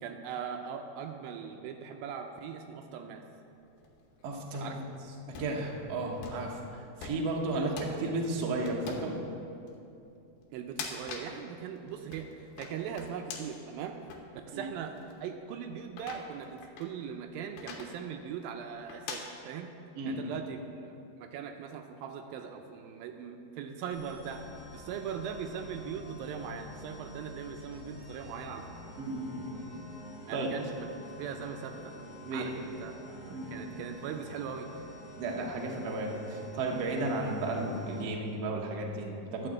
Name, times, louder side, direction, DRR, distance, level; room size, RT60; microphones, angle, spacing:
voice 1, 0.0-3.2 4.6-4.8 7.5-7.7 10.5-14.0 14.5-15.0 15.2-19.7 20.1-24.4 24.7-28.7 30.3-30.9 31.2-31.9 32.3-32.9 33.3-34.7, right 7 dB, 80° right, 5 dB, 2.3 m, -40 dB
sound 1, 3.7-4.6 5.2-5.5 6.2-6.5 7.0-7.3 7.8-8.0 8.7-9.1 9.7-9.8 10.6-11.3 11.8-13.6 14.1-14.2 15.0-15.1 15.9-16.9 17.6-17.9 18.9-19.2, left 5 dB, 85° left, 3.0 m, -43 dB
voice 2, 4.2-4.8 5.3-6.6 7.0-9.2 14.5-14.6 20.0-20.3 29.0-29.5 30.3-30.6 32.3-32.5 33.3-33.7 35.2-39.5, right 2 dB, 60° right, 0 dB, 1.8 m, -33 dB
sound 2, 23.9-38.0, left 1 dB, 45° left, 2.6 m, -48 dB
12.0 x 6.0 x 7.6 m, 2.7 s
omnidirectional pair, 4.3 m